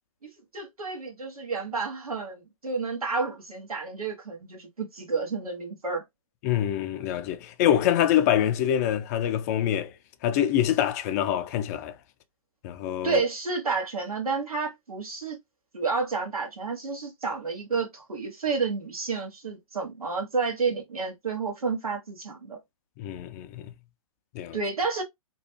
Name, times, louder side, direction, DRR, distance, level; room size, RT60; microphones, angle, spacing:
voice 1, 0.2-6.0 13.0-15.4 15.7-22.6 24.5-25.0, right 4 dB, 75° right, 1.4 m, -30 dB
voice 2, 6.4-9.9 10.2-11.9 12.6-13.2 23.0-23.7 24.3-24.6, left 10 dB, 30° left, 0.4 m, -25 dB
3.0 x 2.2 x 3.1 m
figure-of-eight pair, 125°, 19 cm